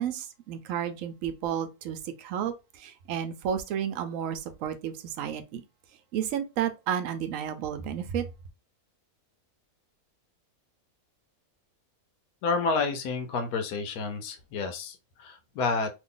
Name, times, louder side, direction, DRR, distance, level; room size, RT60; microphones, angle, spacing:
voice 1, 0.0-2.5 2.8-5.6 6.1-8.2, right 9 dB, 70° right, 0.9 m, -32 dB
voice 2, 12.4-15.9, left 4 dB, 90° left, 1.1 m, -30 dB
2.9 x 2.5 x 3.7 m
omnidirectional pair, 1.6 m